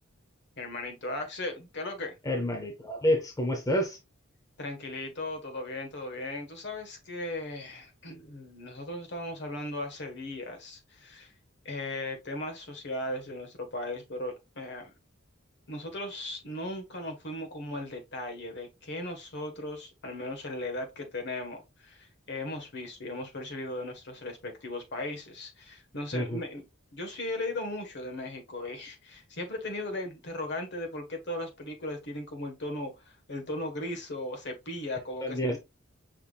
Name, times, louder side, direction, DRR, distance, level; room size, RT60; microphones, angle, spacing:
voice 1, 0.6-2.2 4.6-11.3 11.6-14.9 15.7-26.6 26.9-35.6, left 1 dB, 60° left, 1.4 m, -37 dB
voice 2, 2.2-4.0 26.1-26.4 35.2-35.6, equal, 15° left, 0.7 m, -28 dB
5.7 x 3.5 x 2.3 m
head